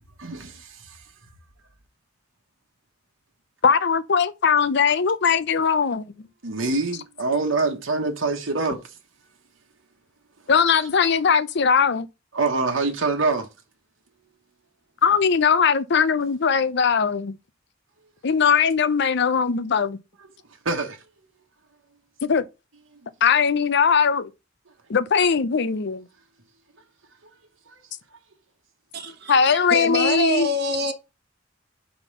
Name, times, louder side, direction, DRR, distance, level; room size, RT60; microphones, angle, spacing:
voice 1, 0.2-1.1 6.4-9.0 12.3-13.5 20.5-21.0 27.2-27.3 27.7-27.8, right 3 dB, 85° right, 1.2 m, -25 dB
voice 2, 3.6-6.0 10.5-12.1 15.0-17.4 18.2-20.0 22.2-22.5 23.2-24.3 24.9-26.1 29.3-30.5, left 6 dB, 60° left, 0.6 m, -20 dB
voice 3, 28.9-30.9, right 1 dB, 55° right, 1.3 m, -26 dB
5.3 x 4.4 x 5.4 m
head